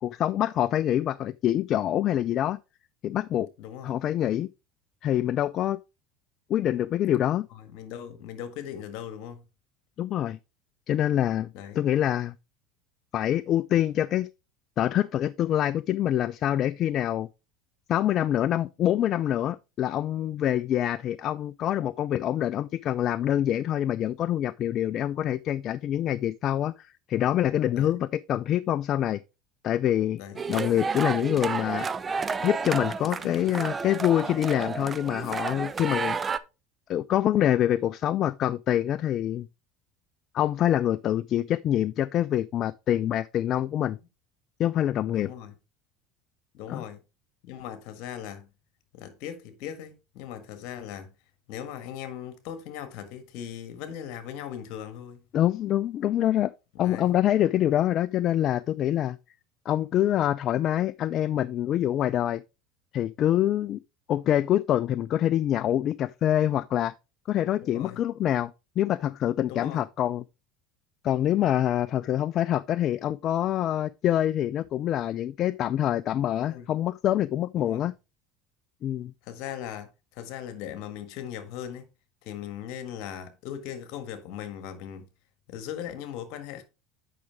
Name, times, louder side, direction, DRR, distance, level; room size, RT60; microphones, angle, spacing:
voice 1, 0.0-2.6 3.0-3.5 3.8-4.5 5.0-5.8 6.5-7.5 10.0-10.4 10.9-11.5 11.8-12.3 13.1-14.3 14.8-17.3 17.9-29.2 29.6-30.2 30.5-31.9 32.4-36.2 36.9-39.5 40.3-44.0 44.6-45.3 46.7-46.8 55.3-56.5 56.8-59.2 59.7-62.4 62.9-63.8 64.1-66.9 67.3-68.5 68.8-70.2 71.0-77.9 78.8-79.1, left 11 dB, 50° left, 0.3 m, -25 dB
voice 2, 3.6-3.9 7.5-9.4 11.5-11.8 27.8-27.9 30.2-30.4 35.8-36.1 45.1-45.5 46.5-47.0 47.4-48.5 48.9-51.1 51.5-55.2 56.8-57.2 67.6-68.0 69.5-69.9 76.4-76.7 77.6-77.8 79.2-81.8 82.2-85.0 85.5-86.6, left 9 dB, 65° left, 1.7 m, -39 dB
sound 1, 30.4-36.4, right 5 dB, 25° right, 0.6 m, -31 dB
8.6 x 5.9 x 3.5 m
hypercardioid pair, 80°, 0 cm